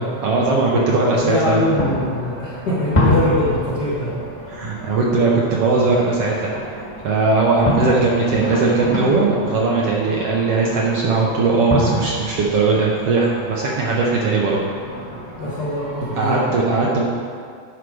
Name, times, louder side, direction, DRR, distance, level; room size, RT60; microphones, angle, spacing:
voice 1, 0.2-1.6 4.5-6.8 7.0-14.6 16.2-17.0, right 3 dB, 70° right, -3 dB, 1.5 m, -19 dB
voice 2, 1.2-4.1 15.4-16.4, left 1 dB, 55° left, -8 dB, 1.1 m, -22 dB
sound 1, 1.2-16.4, left 1 dB, 15° left, 1.2 m, -28 dB
11.0 x 5.0 x 4.8 m, 2.2 s
omnidirectional pair, 3.5 m